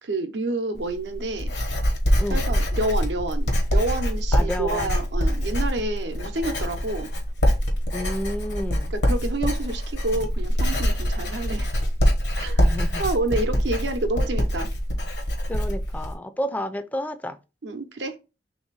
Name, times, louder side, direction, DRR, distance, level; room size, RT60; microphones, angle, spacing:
voice 1, 0.0-1.5 2.3-7.1 8.9-11.7 12.4-12.6 13.0-14.7 17.6-18.2, right 2 dB, 85° right, 0.7 m, -28 dB
Writing, 0.8-16.1, equal, 80° left, 1.1 m, -24 dB
voice 2, 4.3-5.0 7.9-8.9 12.6-13.0 15.5-17.4, equal, 10° left, 0.3 m, -31 dB
3.3 x 2.7 x 4.5 m
head